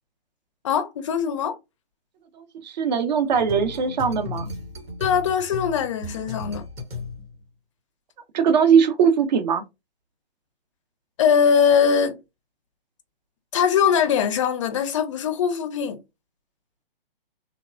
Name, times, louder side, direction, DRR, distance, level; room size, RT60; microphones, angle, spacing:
voice 1, 0.6-1.6 5.0-6.6 11.2-12.2 13.5-16.0, left 7 dB, 30° left, 0.4 m, -21 dB
voice 2, 2.6-4.5 8.3-9.6, right 7 dB, 45° right, 0.6 m, -20 dB
sound 1, 3.3-7.5, left 3 dB, 90° right, 1.0 m, -35 dB
3.1 x 2.1 x 2.4 m
figure-of-eight pair, 135°, 30 cm